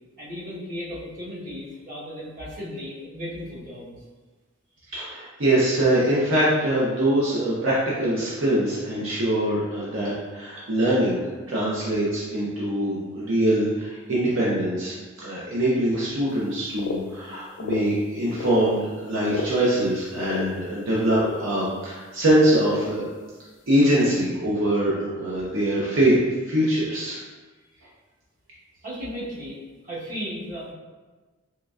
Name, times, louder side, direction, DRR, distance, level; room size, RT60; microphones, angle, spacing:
voice 1, 0.2-3.9 28.8-30.7, equal, 40° right, -8 dB, 1.1 m, -35 dB
voice 2, 4.9-11.2 11.5-14.9 15.2-23.0 23.7-26.2 26.5-27.2, right 1 dB, 65° right, -8 dB, 0.7 m, -23 dB
sound 1, 16.8-17.0 17.3-17.8 18.4-18.6 19.2-19.5 20.2-20.5 21.1-21.3 22.6-22.7 24.1-24.2, left 5 dB, 60° left, 0.3 m, -31 dB
3.8 x 3.1 x 2.3 m, 1.3 s
head